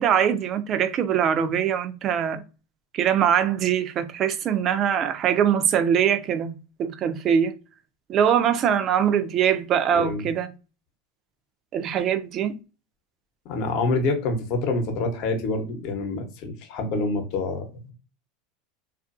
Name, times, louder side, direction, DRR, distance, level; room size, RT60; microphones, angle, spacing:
voice 1, 0.0-2.4 2.9-7.5 8.1-10.5 11.7-12.6, right 8 dB, 40° right, 0.4 m, -22 dB
voice 2, 9.9-10.2 13.4-17.9, left 3 dB, 55° left, 0.8 m, -27 dB
2.5 x 2.4 x 2.5 m
hypercardioid pair, 105°, 0 cm